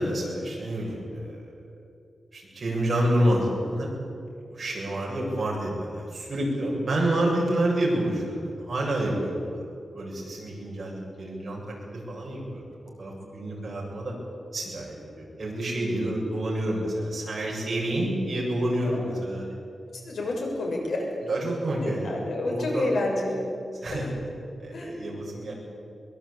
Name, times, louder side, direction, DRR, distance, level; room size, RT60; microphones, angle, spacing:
voice 1, 0.0-1.5 2.3-3.9 4.5-9.6 9.9-12.6 13.0-14.2 14.5-19.5 21.3-22.2 22.4-22.9 23.8-24.1 24.6-25.5, right 1 dB, 40° right, -3 dB, 7.4 m, -28 dB
voice 2, 19.9-21.1 21.8-23.5 23.9-24.1 24.7-24.9 25.2-25.5, left 2 dB, 90° left, -1 dB, 6.6 m, -30 dB
22.5 x 22.5 x 8.8 m, 2.5 s
wide cardioid pair, 175°, 0 cm